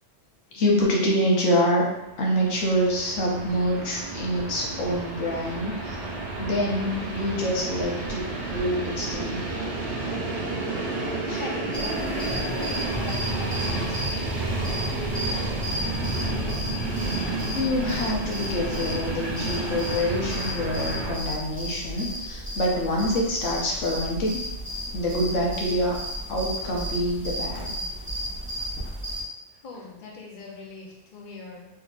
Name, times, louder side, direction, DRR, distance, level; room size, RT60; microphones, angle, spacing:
voice 1, 0.5-1.8 2.2-6.0 6.4-8.2 8.5-9.4 17.5-24.4 24.9-26.0 26.3-27.7, equal, 85° left, -3 dB, 1.2 m, -26 dB
Train, 2.2-21.1, right 2 dB, 70° right, 1.2 m, -31 dB
voice 2, 11.3-14.3 29.6-31.7, left 3 dB, 50° left, -2 dB, 0.7 m, -40 dB
sound 1, 11.7-29.2, equal, 10° right, 1.0 m, -34 dB
4.2 x 2.7 x 2.3 m, 0.90 s
omnidirectional pair, 1.2 m